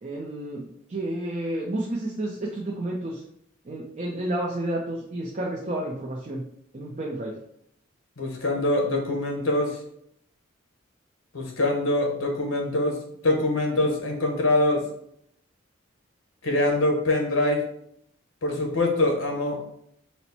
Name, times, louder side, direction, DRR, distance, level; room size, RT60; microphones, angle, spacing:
voice 1, 0.0-3.2 3.6-6.4 6.7-7.3, right 1 dB, 35° right, -3 dB, 0.5 m, -31 dB
voice 2, 8.2-9.8 11.3-13.0 13.2-14.8 16.4-17.6 18.4-19.6, left 2 dB, 75° left, 2 dB, 1.0 m, -24 dB
4.3 x 2.1 x 4.1 m, 0.72 s
head